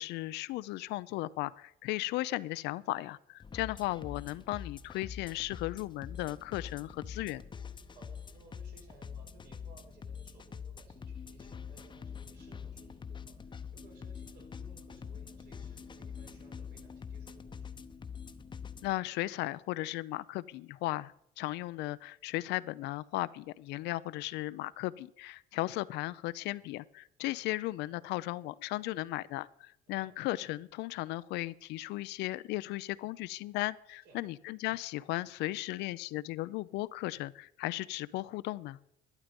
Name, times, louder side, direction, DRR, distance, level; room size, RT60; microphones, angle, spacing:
voice 1, 0.0-7.4 18.8-38.8, left 18 dB, 85° left, 17 dB, 0.5 m, -36 dB
sound 1, 3.4-18.9, left 7 dB, 30° left, 0.8 m, -45 dB
voice 2, 7.9-17.8 29.9-30.1 34.0-34.2, right 4 dB, 80° right, 2 dB, 3.9 m, -60 dB
12.0 x 11.0 x 5.2 m, 0.76 s
cardioid pair, 110°, 17 cm